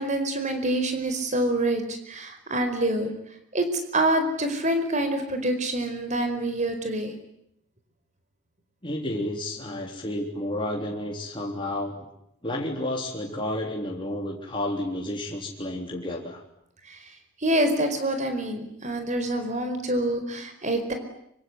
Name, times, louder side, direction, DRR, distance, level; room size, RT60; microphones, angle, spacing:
voice 1, 0.0-3.1 3.5-7.1 16.8-20.9, right 1 dB, 35° right, 7 dB, 4.8 m, -26 dB
voice 2, 8.8-12.0 12.4-16.4, left 1 dB, 25° left, -1 dB, 3.7 m, -31 dB
25.0 x 25.0 x 9.6 m, 0.76 s
head